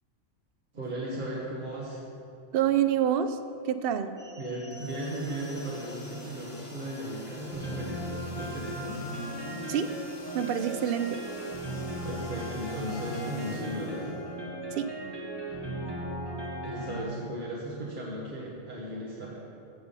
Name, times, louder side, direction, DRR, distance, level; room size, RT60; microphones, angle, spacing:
voice 1, 0.7-2.0 4.4-9.1 12.0-14.2 16.6-19.4, right 1 dB, 40° right, -6 dB, 1.5 m, -36 dB
voice 2, 2.5-4.2 9.7-10.1 10.3-11.2 14.7-15.0, right 9 dB, 60° right, 10 dB, 0.7 m, -27 dB
sound 1, 4.2-17.0, right 1 dB, 20° right, 1.3 m, -38 dB
sound 2, 4.7-14.7, left 2 dB, 35° left, 1.3 m, -47 dB
14.5 x 5.9 x 5.5 m, 2.6 s
omnidirectional pair, 1.3 m